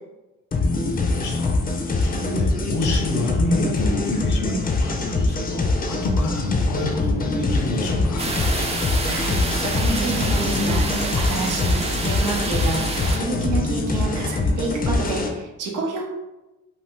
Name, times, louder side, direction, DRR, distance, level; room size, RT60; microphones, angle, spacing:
sound 1, 0.5-15.3, left 2 dB, 30° left, 0.5 m, -23 dB
voice 1, 1.0-8.3, left 1 dB, 75° left, 2 dB, 0.8 m, -28 dB
sound 2, 8.2-13.2, right 2 dB, 20° right, 0.5 m, -27 dB
voice 2, 9.0-16.1, right 3 dB, 85° right, 0 dB, 0.8 m, -29 dB
2.8 x 2.5 x 3.6 m, 1.0 s
cardioid pair, 90°, 30 cm